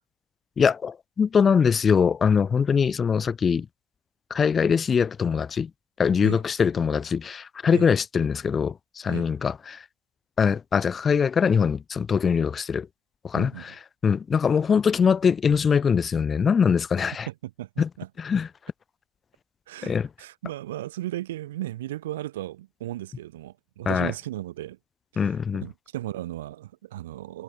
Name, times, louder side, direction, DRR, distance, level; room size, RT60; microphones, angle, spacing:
voice 1, 0.6-3.7 4.3-5.7 6.0-9.9 10.4-12.9 13.2-17.3 17.8-17.9 18.2-18.5 19.8-20.1 23.8-24.1 25.2-25.7, left 6 dB, 30° left, 1.5 m, -22 dB
voice 2, 17.3-18.1 19.7-24.8 25.1-25.3 25.6-27.4, right 14 dB, 75° right, 2.6 m, -35 dB
hypercardioid pair, 75°, 0 cm